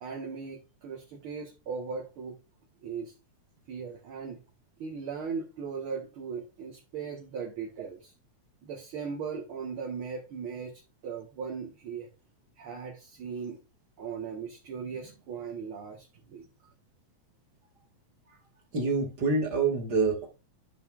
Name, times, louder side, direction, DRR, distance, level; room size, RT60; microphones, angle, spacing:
voice 1, 0.0-2.4 2.8-3.1 3.7-4.4 4.8-8.1 8.6-12.1 12.6-13.6 14.0-16.5, right 6 dB, 55° right, 1.8 m, -38 dB
voice 2, 18.7-20.3, right 4 dB, 35° right, 2.4 m, -26 dB
12.5 x 5.3 x 2.5 m
omnidirectional pair, 3.4 m